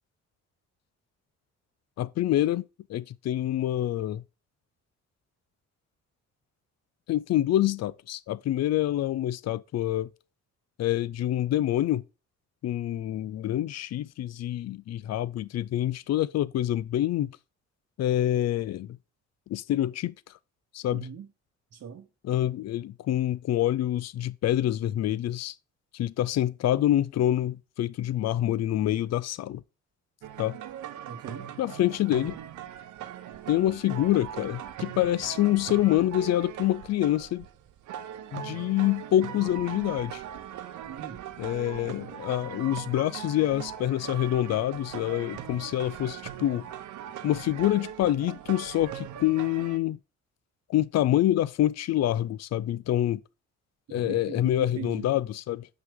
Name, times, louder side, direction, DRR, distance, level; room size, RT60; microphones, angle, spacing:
voice 1, 2.0-4.2 7.1-10.1 10.8-12.0 12.6-17.3 18.0-18.9 19.5-20.1 20.7-21.1 22.2-25.5 25.9-29.6 30.4-30.6 31.6-32.4 33.5-37.4 38.3-40.2 41.4-46.6 47.2-50.0 50.7-53.2 53.9-55.7, left 13 dB, 60° left, 0.5 m, -26 dB
voice 2, 20.9-21.3 21.7-22.1 31.1-31.5 40.9-41.2 53.9-55.1, right 7 dB, 55° right, 1.0 m, -40 dB
Darj Rhythm+San'a, 30.2-49.8, right 10 dB, 80° right, 0.9 m, -40 dB
7.9 x 5.8 x 3.6 m
cardioid pair, 90°, 30 cm